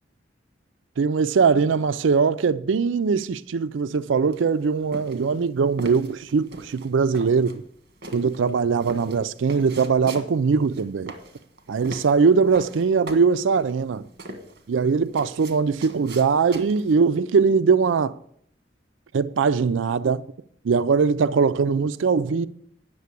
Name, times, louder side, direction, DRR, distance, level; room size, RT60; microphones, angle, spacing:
voice 1, 1.0-7.6 8.1-11.1 11.7-14.0 14.7-18.2 19.1-20.2 20.6-22.5, right 5 dB, 85° right, 0.4 m, -21 dB
sound 1, 4.3-17.0, right 1 dB, 50° right, 1.5 m, -41 dB
9.6 x 6.6 x 8.2 m
head